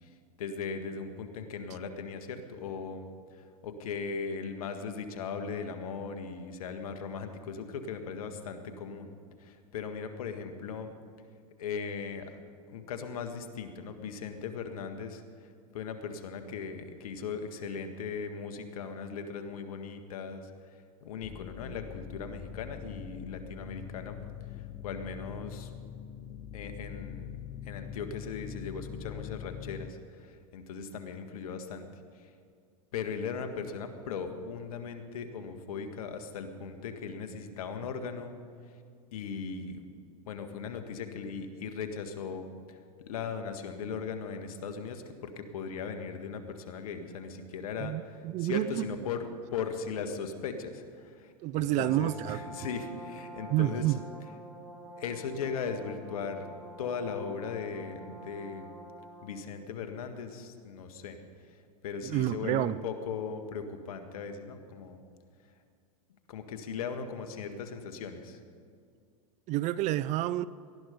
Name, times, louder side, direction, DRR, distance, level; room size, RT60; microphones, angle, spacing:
voice 1, 0.0-3.0 3.3-9.1 9.4-10.9 11.6-12.4 12.7-20.5 21.0-24.2 24.5-25.7 26.5-27.3 27.6-31.9 32.1-32.3 32.9-38.3 39.1-39.8 40.3-42.8 43.1-53.8 55.0-56.5 56.8-58.6 59.2-61.2 61.8-65.0 66.3-68.4, left 5 dB, 70° left, 8 dB, 1.7 m, -38 dB
sound 1, 21.2-29.9, left 9 dB, 30° left, 0.8 m, -43 dB
voice 2, 47.8-48.9 51.4-52.4 53.5-54.0 62.0-62.8 69.5-70.5, right 15 dB, 40° right, 18 dB, 0.5 m, -29 dB
Brass instrument, 51.6-59.4, right 2 dB, ahead, 4.3 m, -47 dB
19.0 x 12.5 x 5.2 m, 2.2 s
hypercardioid pair, 105°, 19 cm